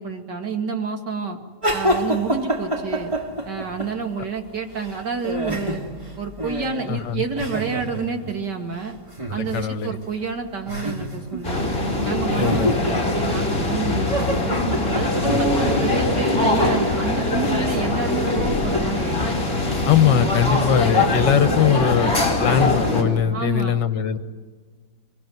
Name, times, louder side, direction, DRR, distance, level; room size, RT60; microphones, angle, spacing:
voice 1, 0.0-1.4 1.7-3.1 3.4-5.8 6.2-9.0 9.3-11.7 12.0-14.6 14.9-19.2 23.3-23.8, right 5 dB, 65° right, 4 dB, 2.7 m, -29 dB
sound 1, 1.6-4.2 4.5-8.4 9.1-9.6 10.0-10.1 10.6-11.5 11.8-11.9 12.3-13.7 14.1-18.9, equal, 15° right, 2.3 m, -28 dB
voice 2, 6.9-7.2 9.5-9.9 12.4-12.8 15.3-15.7 19.9-22.1 22.4-24.2, left 8 dB, 70° left, 11 dB, 1.7 m, -21 dB
sound 2, 11.4-23.0, left 2 dB, 30° left, 4.6 m, -22 dB
24.5 x 23.0 x 9.3 m, 1.5 s
omnidirectional pair, 2.0 m